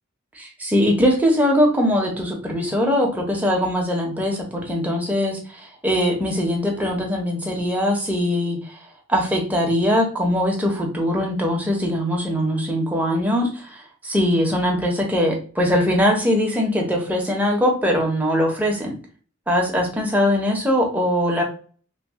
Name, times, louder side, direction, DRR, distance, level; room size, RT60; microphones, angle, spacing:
voice 1, 0.4-8.7 9.1-18.9 19.5-21.4, equal, 10° right, 0 dB, 0.8 m, -21 dB
3.2 x 2.3 x 3.5 m, 0.40 s
head